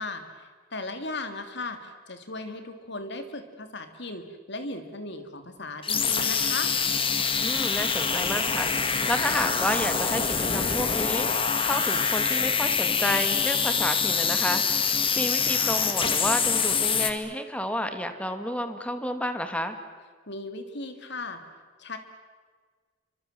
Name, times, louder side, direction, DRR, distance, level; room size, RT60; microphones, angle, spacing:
voice 1, 0.0-6.7 20.3-21.4 21.8-22.0, left 2 dB, 65° left, 8 dB, 3.0 m, -37 dB
sound 1, 5.8-17.1, left 6 dB, 30° left, 2.0 m, -25 dB
voice 2, 7.4-19.8, equal, 5° left, 8 dB, 2.2 m, -31 dB
29.0 x 25.0 x 7.7 m, 1.5 s
head